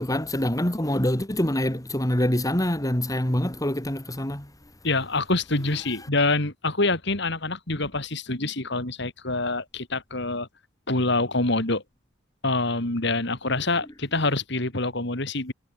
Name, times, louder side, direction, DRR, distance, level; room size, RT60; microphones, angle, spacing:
voice 1, 0.0-4.5, left 1 dB, 20° left, 2.2 m, -25 dB
voice 2, 4.8-10.5 10.9-11.8 12.4-15.5, left 2 dB, 60° left, 3.5 m, -26 dB
head